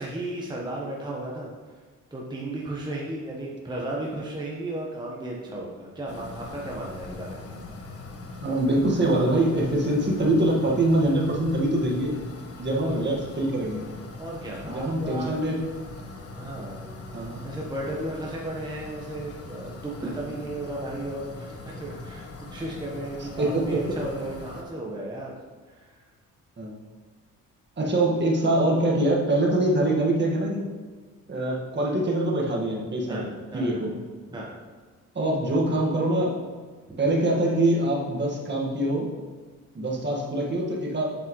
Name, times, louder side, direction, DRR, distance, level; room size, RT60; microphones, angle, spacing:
voice 1, 0.0-1.5 2.1-7.5 12.8-13.2 14.2-15.3 16.4-16.8 17.4-25.4 25.7-26.0 33.1-33.9 34.3-34.6 36.9-37.0, right 1 dB, 15° right, -4 dB, 1.2 m, -34 dB
sound 1, 6.1-24.6, left 3 dB, 50° left, 1.3 m, -41 dB
voice 2, 8.4-12.2 12.6-13.8 14.6-15.6 17.1-17.4 23.4-23.8 26.6-26.7 27.8-30.6 31.3-33.3 33.5-34.0 35.2-36.5 37.0-39.1 39.7-41.1, right 1 dB, 35° right, -2 dB, 1.7 m, -24 dB
7.7 x 7.4 x 3.2 m, 1.5 s
cardioid pair, 90°, 30 cm